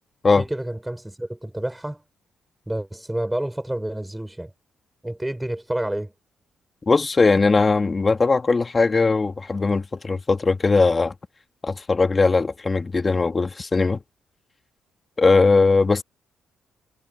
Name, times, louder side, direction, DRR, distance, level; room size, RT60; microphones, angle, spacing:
voice 1, 0.4-2.0 2.7-4.5 5.0-6.1, right 1 dB, 5° right, 5.6 m, -29 dB
voice 2, 6.9-11.1 11.6-14.0 15.2-16.0, left 3 dB, 30° left, 2.2 m, -19 dB
cardioid pair, 90°, 0 cm